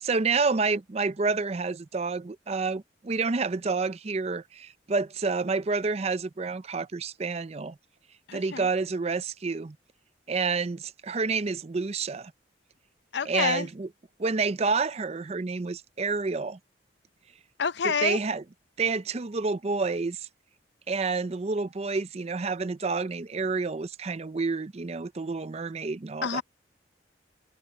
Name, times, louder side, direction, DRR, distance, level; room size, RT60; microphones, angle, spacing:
voice 1, 0.0-7.8 8.3-9.8 10.3-12.3 13.3-13.9 14.2-16.6 18.0-18.4 18.8-20.3 20.9-26.4, right 4 dB, 35° right, 0.5 m, -29 dB
voice 2, 8.3-8.7 13.1-13.7 17.6-18.2 26.2-26.4, left 6 dB, 65° left, 0.7 m, -28 dB
head